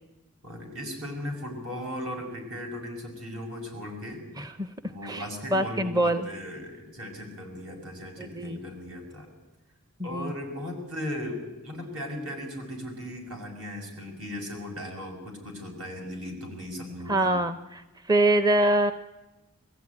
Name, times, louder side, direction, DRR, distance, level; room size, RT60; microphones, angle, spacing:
voice 1, 0.4-4.2 4.9-9.3 10.0-17.3, left 1 dB, 75° right, 1 dB, 6.5 m, -37 dB
voice 2, 4.4-4.7 5.0-5.2 5.5-6.2 8.2-8.6 10.0-10.3 17.1-17.8 18.1-18.9, right 1 dB, 15° right, 11 dB, 0.6 m, -24 dB
21.5 x 15.0 x 9.7 m, 1.0 s
head